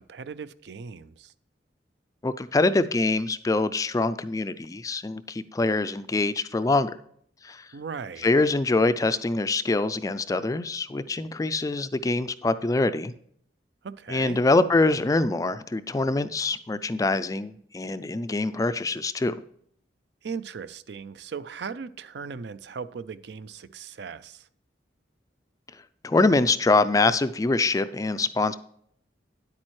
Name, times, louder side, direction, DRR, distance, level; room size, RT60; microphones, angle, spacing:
voice 1, 0.0-1.3 7.7-8.3 13.8-14.4 20.2-24.5, right 5 dB, 65° right, 15 dB, 0.4 m, -38 dB
voice 2, 2.2-7.0 7.4-7.7 8.2-13.1 14.1-19.4 26.0-28.6, left 3 dB, 20° left, 13 dB, 0.3 m, -24 dB
9.7 x 8.5 x 3.1 m, 0.65 s
head